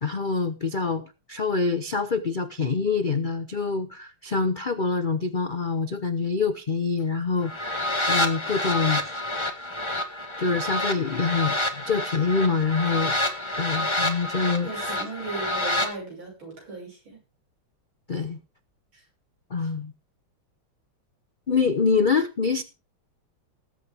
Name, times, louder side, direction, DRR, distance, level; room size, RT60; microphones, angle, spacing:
voice 1, 0.0-9.0 10.4-13.2 13.6-14.9 18.1-18.4 19.5-19.9 21.5-22.6, left 4 dB, 55° left, 0.5 m, -26 dB
sound 1, 7.4-15.9, left 1 dB, 15° left, 1.4 m, -28 dB
voice 2, 14.6-17.2 18.9-19.0 19.6-19.7, right 2 dB, 80° right, 6.9 m, -37 dB
19.5 x 8.5 x 3.5 m
omnidirectional pair, 2.2 m